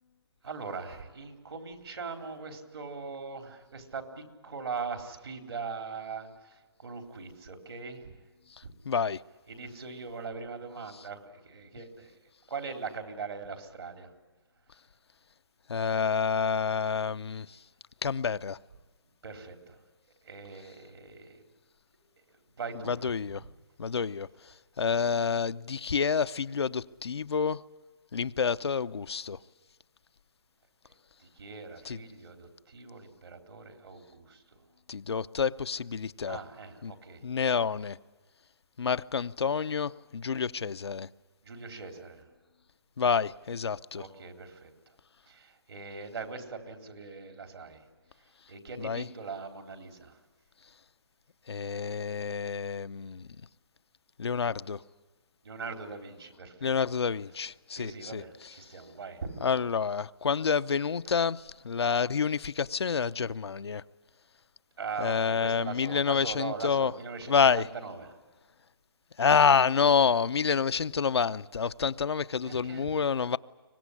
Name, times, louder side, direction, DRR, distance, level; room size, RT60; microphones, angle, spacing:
voice 1, 0.4-8.1 8.6-8.7 9.5-12.1 12.5-14.1 19.2-19.8 20.2-21.4 22.6-23.0 23.3-23.5 31.2-34.4 36.2-37.2 41.4-42.2 43.9-44.7 45.3-47.8 48.5-50.2 55.4-56.7 57.7-59.4 64.8-68.2 72.4-72.9, right 5 dB, 75° right, 3.9 m, -41 dB
voice 2, 8.9-9.2 15.7-17.5 18.0-18.6 22.9-23.4 23.8-24.3 24.8-27.6 28.1-29.4 31.8-32.0 34.9-36.4 36.8-36.9 37.2-38.0 38.8-41.1 43.0-44.0 48.8-49.0 51.5-53.2 54.2-54.8 56.6-58.2 59.4-63.8 65.0-66.9 67.3-67.6 69.2-73.4, left 6 dB, 85° left, 0.7 m, -28 dB
24.0 x 19.5 x 9.9 m
hypercardioid pair, 160°, 13 cm